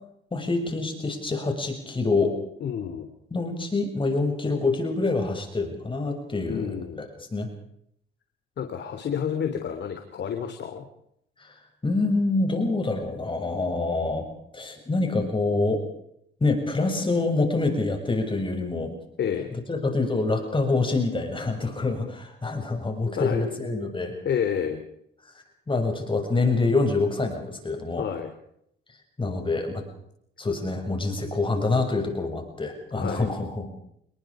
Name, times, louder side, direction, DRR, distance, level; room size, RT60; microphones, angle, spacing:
voice 1, 0.3-2.4 3.3-7.5 11.4-14.3 14.5-15.8 16.4-18.9 19.7-24.1 25.7-28.0 29.2-29.8 30.4-33.7, left 3 dB, 25° left, 4 dB, 7.0 m, -26 dB
voice 2, 2.6-3.1 6.5-7.0 8.6-10.8 19.2-19.5 23.2-23.4 24.2-24.8 28.0-28.3 32.9-33.3, left 8 dB, 60° left, 6 dB, 3.3 m, -29 dB
29.0 x 21.5 x 5.1 m, 0.73 s
cardioid pair, 90°, 20 cm